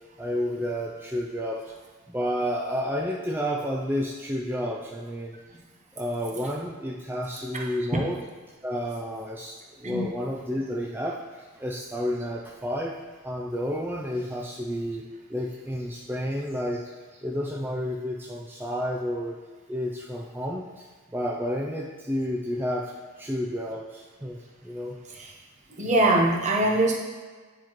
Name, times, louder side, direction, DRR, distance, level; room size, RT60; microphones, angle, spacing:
voice 1, 0.2-1.6 2.1-5.4 6.0-8.2 8.6-13.0 13.2-15.0 15.3-16.9 17.2-19.4 19.7-20.9 21.1-22.9 23.2-25.0, equal, 10° right, -3 dB, 0.4 m, -30 dB
voice 2, 25.8-27.0, right 1 dB, 35° right, -1 dB, 0.9 m, -23 dB
9.3 x 4.5 x 3.1 m, 1.4 s
head